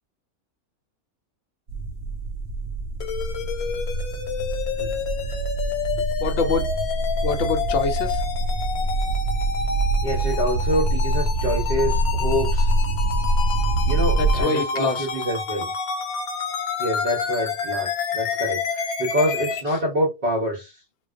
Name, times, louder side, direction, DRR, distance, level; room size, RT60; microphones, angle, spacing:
sound 1, 1.7-14.4, right 2 dB, 80° right, 1.0 m, -25 dB
sound 2, 3.0-19.6, left 6 dB, 80° left, 1.1 m, -29 dB
voice 1, 6.2-6.7 7.2-8.2 14.1-15.1, left 4 dB, 65° left, 0.7 m, -25 dB
voice 2, 10.0-12.7 13.9-15.7 16.8-20.8, equal, 50° right, 0.8 m, -26 dB
2.3 x 2.2 x 2.3 m
omnidirectional pair, 1.5 m